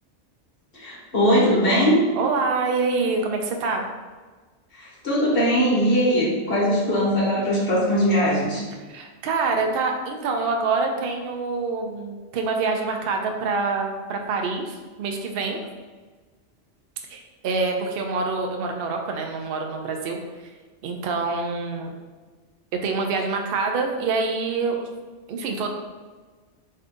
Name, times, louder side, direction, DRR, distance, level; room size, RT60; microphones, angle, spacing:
voice 1, 0.7-2.0 4.8-8.6, equal, 50° left, -5 dB, 1.3 m, -20 dB
voice 2, 2.1-3.9 8.9-15.6 17.1-20.5 20.8-21.9 22.7-24.9 25.3-25.7, right 4 dB, 60° right, 2 dB, 0.7 m, -26 dB
3.8 x 2.7 x 3.5 m, 1.4 s
omnidirectional pair, 1.2 m